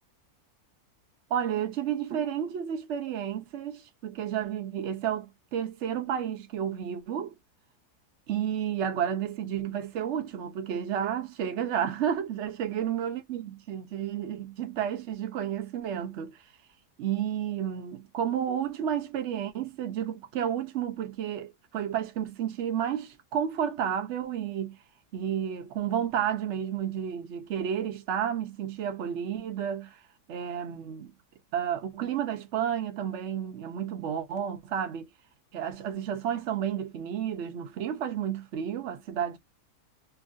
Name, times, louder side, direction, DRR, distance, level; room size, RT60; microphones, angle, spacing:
voice 1, 1.3-7.3 8.3-16.4 17.0-24.8 25.1-30.0 30.3-31.1 31.5-35.1 35.5-39.4, right 9 dB, 55° right, 0.9 m, -31 dB
3.0 x 2.6 x 2.5 m
omnidirectional pair, 1.7 m